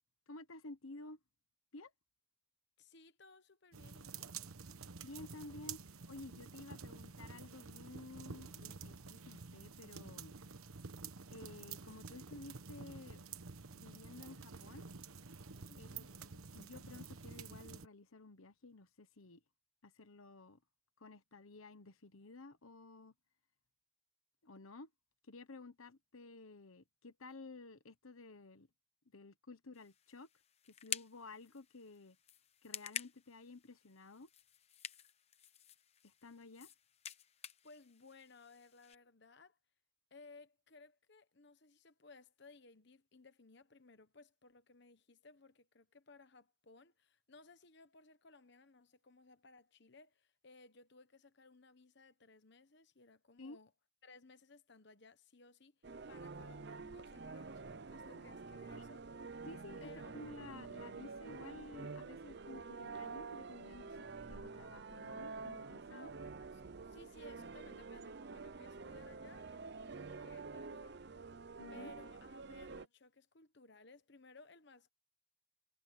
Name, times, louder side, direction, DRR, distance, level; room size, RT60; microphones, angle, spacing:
voice 1, 0.3-1.2 1.7-1.9 5.0-5.8 6.1-10.3 11.3-13.2 13.7-14.8 15.8-16.1 16.3-19.4 19.8-20.6 21.0-23.1 24.4-24.9 25.3-28.7 29.1-30.3 30.8-32.2 32.6-34.3 36.0-36.7 53.4-53.6 58.8-58.9 59.5-66.1 71.6-71.9, left 3 dB, 80° left, 1.2 m, -53 dB
voice 2, 2.8-4.3 15.7-16.2 37.6-39.6 40.1-53.7 54.0-59.4 59.8-60.2 65.9-71.0 71.7-74.9, left 3 dB, 55° left, 1.1 m, -61 dB
sound 1, 3.7-17.9, right 5 dB, 90° right, 1.1 m, -50 dB
sound 2, 29.7-38.9, left 8 dB, 30° left, 0.9 m, -50 dB
sound 3, 55.8-72.9, right 4 dB, 50° right, 0.6 m, -48 dB
head